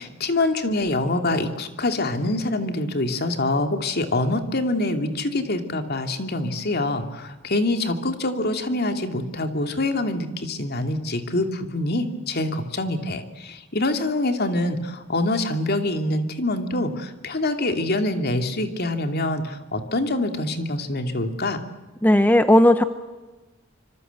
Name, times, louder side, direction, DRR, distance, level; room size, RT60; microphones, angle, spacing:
voice 1, 0.0-21.6, left 2 dB, 50° left, 6 dB, 2.7 m, -25 dB
voice 2, 22.0-22.8, left 1 dB, 10° left, 10 dB, 0.8 m, -15 dB
26.0 x 25.5 x 8.2 m, 1.2 s
head